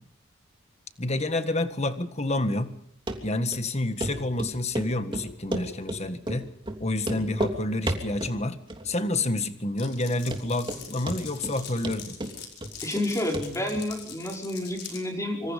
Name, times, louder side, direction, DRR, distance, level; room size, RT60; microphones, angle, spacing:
voice 1, 1.0-2.7 3.2-6.5 6.8-8.6 8.8-12.2, left 2 dB, 35° left, 9 dB, 1.7 m, -29 dB
Run, 3.1-3.2 3.5-3.6 4.0-4.1 4.4-4.9 5.1-6.0 6.3-6.4 6.7-6.8 7.0-7.6 7.9-8.4 8.7-9.1 9.4-9.5 10.0-10.1 10.3-10.8 11.1-11.6 11.8-13.1 13.3-13.5 13.7-13.8, right 1 dB, 25° right, 3.0 m, -31 dB
Glass, 9.8-15.0, left 7 dB, 55° left, 5.7 m, -42 dB
voice 2, 12.8-15.5, left 1 dB, 15° left, 1 dB, 5.3 m, -30 dB
26.0 x 25.5 x 5.2 m, 0.67 s
head